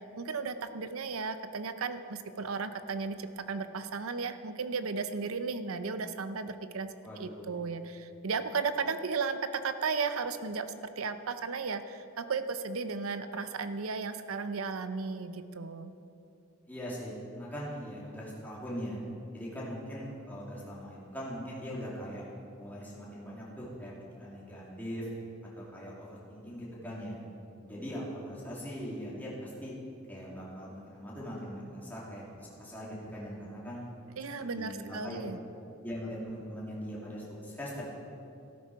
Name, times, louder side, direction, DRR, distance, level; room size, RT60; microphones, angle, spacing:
voice 1, 0.2-6.9 7.2-15.9 34.2-35.4, right 4 dB, 85° right, 11 dB, 0.7 m, -35 dB
voice 2, 7.0-7.6 16.7-19.0 19.3-22.2 22.6-25.1 25.5-27.2 27.6-29.7 30.1-33.8 34.6-35.2 35.8-37.8, equal, 10° left, -6 dB, 2.7 m, -41 dB
13.5 x 12.0 x 4.7 m, 2.7 s
head